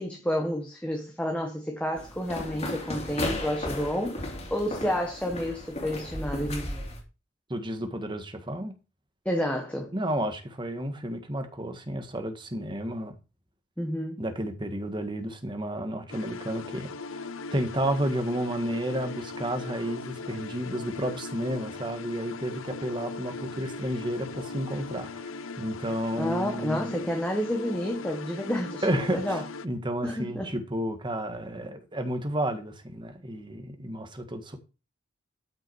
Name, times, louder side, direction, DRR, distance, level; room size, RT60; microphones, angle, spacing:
voice 1, 0.0-6.9 9.2-9.9 13.8-14.2 26.2-29.4 30.0-30.6, equal, 5° left, 1.4 m, -30 dB
sound 1, 2.0-7.0, left 1 dB, 35° left, 3.0 m, -35 dB
voice 2, 7.5-8.7 9.9-13.1 14.2-16.9 17.5-25.2 25.6-26.9 28.8-34.6, right 1 dB, 25° right, 1.6 m, -31 dB
sound 2, 16.1-29.7, left 4 dB, 80° left, 0.7 m, -39 dB
13.0 x 5.7 x 4.7 m
head